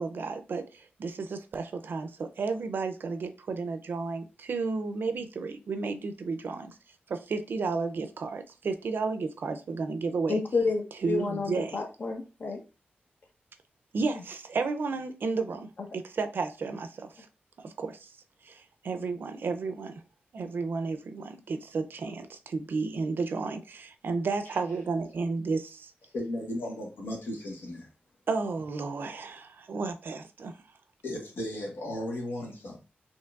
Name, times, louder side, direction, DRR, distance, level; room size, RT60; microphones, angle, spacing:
voice 1, 0.0-6.7 7.1-10.4 11.0-11.8 13.9-17.3 17.6-18.1 18.5-19.9 20.3-25.9 28.3-30.5, right 4 dB, 65° right, 0.5 m, -32 dB
voice 2, 10.3-12.6, left 4 dB, 55° left, 0.9 m, -30 dB
voice 3, 26.1-27.9 31.0-32.8, left 1 dB, 75° left, 1.4 m, -35 dB
4.5 x 2.9 x 2.4 m
wide cardioid pair, 100°, 4 cm